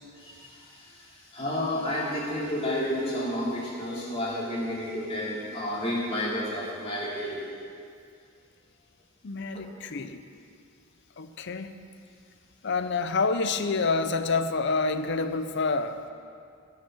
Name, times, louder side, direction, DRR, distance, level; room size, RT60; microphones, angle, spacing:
voice 1, 0.1-7.4 9.5-9.6, left 1 dB, 30° left, -7 dB, 3.2 m, -31 dB
voice 2, 9.2-10.2 11.2-11.9 12.6-16.1, left 4 dB, 55° left, 10 dB, 0.6 m, -28 dB
17.0 x 5.8 x 6.1 m, 2.3 s
head